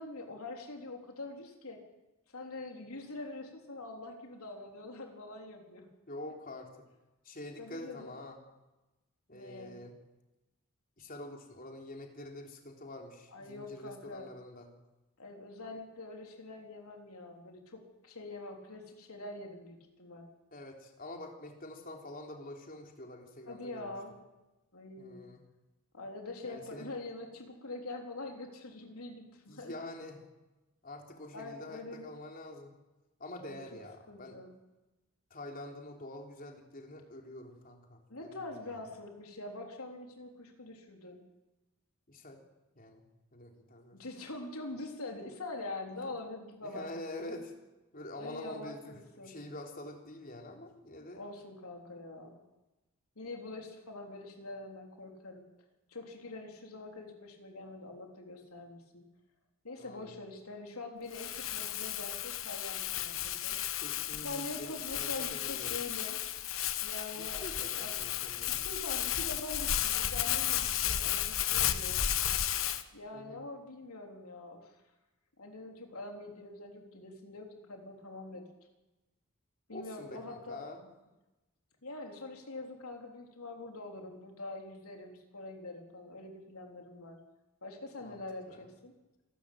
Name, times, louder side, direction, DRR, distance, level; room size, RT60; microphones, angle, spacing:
voice 1, 0.0-1.8 2.3-5.9 7.6-8.1 9.3-9.8 13.3-14.3 15.2-20.3 23.5-24.1 24.7-25.3 25.9-29.7 31.3-32.1 33.4-33.6 34.1-34.5 38.1-41.2 43.9-46.9 48.2-49.4 51.1-52.4 53.2-55.4 55.9-59.0 59.6-63.6 64.2-66.2 66.8-68.0 68.6-72.0 72.9-74.7 75.4-78.4 79.7-80.6 81.8-87.2 87.6-88.9, left 2 dB, 85° left, 3 dB, 3.9 m, -44 dB
voice 2, 6.1-6.9 7.2-8.4 9.3-10.0 11.0-14.7 20.5-23.9 25.0-25.4 26.4-26.9 29.5-30.2 30.8-32.8 33.2-34.4 35.3-38.8 42.1-42.4 42.8-43.1 43.3-44.0 46.0-46.1 46.6-47.5 47.9-51.2 59.8-60.2 63.7-65.8 67.2-68.6 73.1-73.4 79.7-80.9 88.0-88.2 88.4-88.7, left 1 dB, 40° left, 2 dB, 3.6 m, -46 dB
Crumpling crinkling, 61.1-72.8, left 11 dB, 65° left, 1.2 m, -33 dB
26.5 x 13.0 x 8.7 m, 1.1 s
head